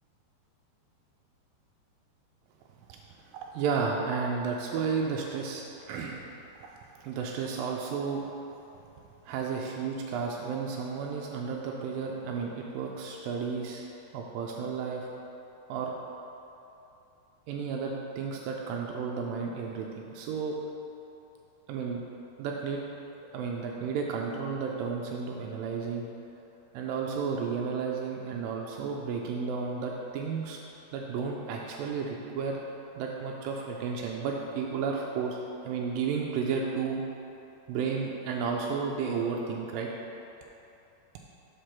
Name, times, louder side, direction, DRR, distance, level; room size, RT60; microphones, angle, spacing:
voice 1, 3.5-6.2 6.6-8.2 9.3-13.9 14.1-15.1 15.7-15.9 17.5-20.6 21.7-22.0 22.4-22.8 23.3-26.1 26.7-30.6 30.9-32.6 33.0-37.0 37.7-39.9, right 5 dB, 90° right, 0 dB, 1.9 m, -32 dB
6.8 x 5.0 x 5.8 m, 2.8 s
omnidirectional pair, 4.6 m